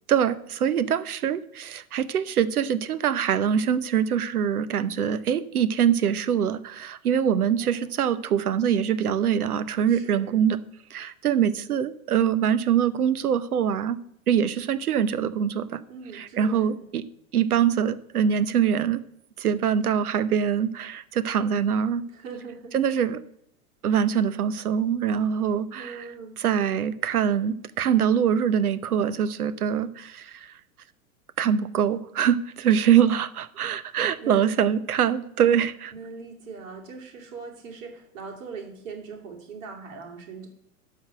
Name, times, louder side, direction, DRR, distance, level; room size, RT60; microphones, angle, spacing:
voice 1, 0.1-10.6 10.9-14.0 14.3-15.8 16.1-17.0 17.3-19.0 19.4-22.0 22.7-23.2 23.8-30.5 31.4-35.9, right 8 dB, 85° right, 15 dB, 0.8 m, -24 dB
voice 2, 7.6-8.3 9.9-10.4 15.9-16.7 22.1-22.7 25.7-26.4 34.2-34.6 35.9-40.5, right 4 dB, 60° right, 1 dB, 2.8 m, -41 dB
12.0 x 4.0 x 7.6 m, 0.73 s
hypercardioid pair, 105°, 43 cm